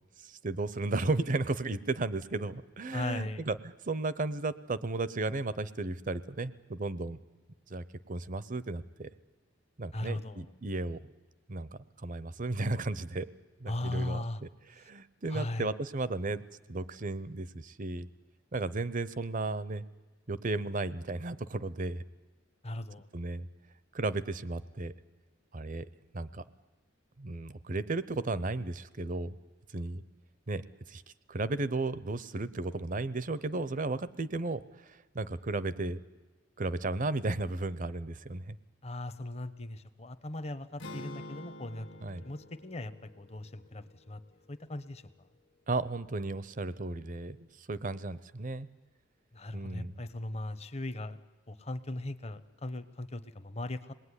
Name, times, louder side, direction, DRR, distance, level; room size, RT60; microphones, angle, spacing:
voice 1, 0.2-7.2 7.7-9.1 9.8-11.0 11.5-11.7 12.0-13.3 13.6-14.5 14.8-16.4 16.7-18.1 18.5-19.8 20.3-22.0 23.1-23.5 23.9-24.9 25.5-25.9 26.1-26.4 27.2-29.4 29.7-30.0 30.5-30.6 30.9-31.0 31.3-34.6 35.1-36.0 36.6-38.6 42.0-42.2 45.7-48.7 49.5-50.0, right 2 dB, 45° right, 16 dB, 0.7 m, -34 dB
voice 2, 2.9-3.4 9.9-10.5 13.7-14.4 15.3-15.7 22.6-23.1 38.8-41.9 42.2-44.2 44.5-45.0 49.3-51.2 51.5-53.9, left 1 dB, 35° left, 12 dB, 0.9 m, -38 dB
sound 1, 40.8-45.0, left 1 dB, 65° left, 1.5 m, -48 dB
26.5 x 19.5 x 9.8 m, 1.2 s
head